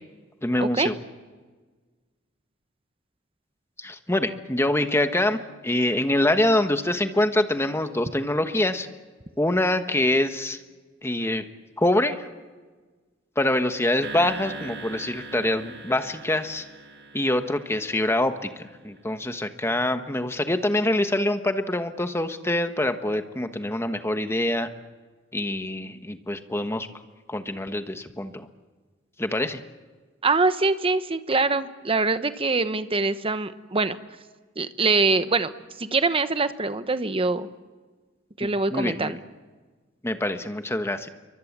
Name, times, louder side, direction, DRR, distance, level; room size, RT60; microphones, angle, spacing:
voice 1, 0.4-0.9 3.8-8.9 9.4-10.6 11.0-11.5 11.8-12.3 13.4-16.6 17.1-24.7 25.3-26.9 27.3-28.5 29.2-29.6 38.4-39.2 40.0-41.1, left 1 dB, 15° left, 8 dB, 1.3 m, -25 dB
sound 1, 14.0-18.5, right 3 dB, 60° right, 1.6 m, -40 dB
voice 2, 30.2-34.0 34.6-35.5 35.8-37.5 38.4-39.2, right 3 dB, 30° right, 11 dB, 1.0 m, -24 dB
28.5 x 23.5 x 7.4 m, 1.4 s
head